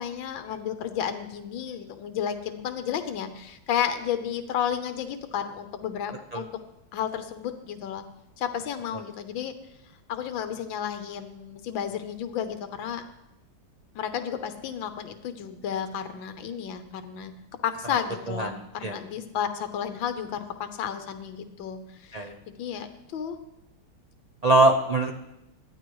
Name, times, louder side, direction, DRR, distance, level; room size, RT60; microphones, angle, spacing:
voice 1, 0.0-6.5 6.9-8.0 8.4-9.5 10.1-13.0 14.0-17.3 17.6-22.2 22.6-22.9 23.1-23.4, left 8 dB, 90° left, 8 dB, 1.6 m, -32 dB
voice 2, 18.4-19.0 22.1-22.4 24.4-25.1, right 2 dB, 90° right, 4 dB, 0.3 m, -22 dB
21.0 x 13.5 x 3.1 m, 0.87 s
omnidirectional pair, 2.0 m